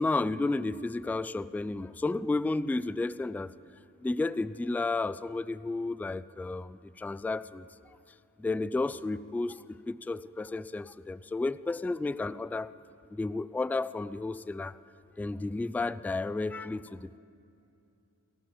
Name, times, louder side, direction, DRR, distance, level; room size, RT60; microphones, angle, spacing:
voice 1, 0.0-3.5 4.0-7.7 8.4-12.7 13.1-14.8 15.2-17.2, left 3 dB, 5° left, 13 dB, 0.3 m, -32 dB
30.0 x 14.5 x 3.1 m, 2.7 s
wide cardioid pair, 60°, 31 cm